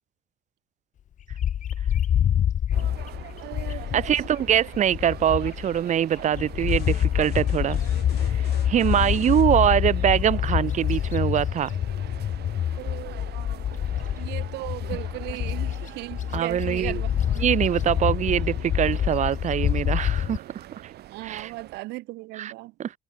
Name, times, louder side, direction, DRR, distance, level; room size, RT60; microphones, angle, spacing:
Bird, 1.3-5.8 6.2-20.4, left 10 dB, 50° left, 1.1 m, -26 dB
sound 1, 2.7-21.8, right 14 dB, 70° right, 4.2 m, -44 dB
voice 1, 3.4-4.6 12.8-13.7 14.2-17.1 21.1-22.7, right 20 dB, 90° right, 2.0 m, -37 dB
voice 2, 3.9-7.8 8.3-11.7 16.3-17.0 17.4-20.9 21.2-21.5 22.4-22.5 22.8-22.9, right 10 dB, 45° right, 0.8 m, -23 dB
sound 2, 6.7-9.5, left 15 dB, 70° left, 2.0 m, -42 dB
cardioid pair, 110°, 17 cm